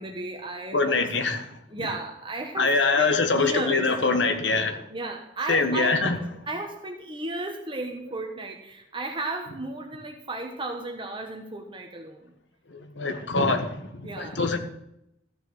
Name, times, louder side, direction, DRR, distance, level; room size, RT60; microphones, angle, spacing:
voice 1, 0.0-1.0 1.7-3.9 4.9-12.3 14.0-14.4, right 2 dB, 30° right, 1.2 m, -34 dB
voice 2, 0.7-1.4 2.6-4.8 5.5-6.2 12.7-14.6, left 3 dB, 80° left, 1.5 m, -24 dB
14.0 x 6.7 x 6.4 m
head